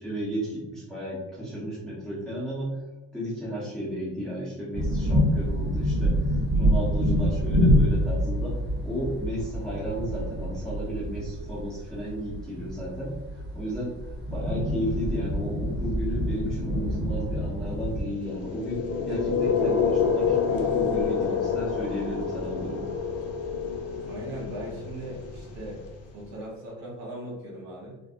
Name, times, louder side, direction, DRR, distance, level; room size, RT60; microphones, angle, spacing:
voice 1, 0.0-2.8 3.1-13.2 13.5-13.9 14.3-22.9, equal, ahead, -9 dB, 1.2 m, -33 dB
sound 1, 4.7-18.0, equal, 35° right, 1.0 m, -26 dB
sound 2, 18.1-26.2, left 6 dB, 55° left, 0.5 m, -28 dB
voice 2, 24.0-25.8 26.1-28.0, right 1 dB, 60° right, -4 dB, 1.1 m, -39 dB
3.3 x 2.3 x 2.5 m, 1.0 s
cardioid pair, 135°, 30 cm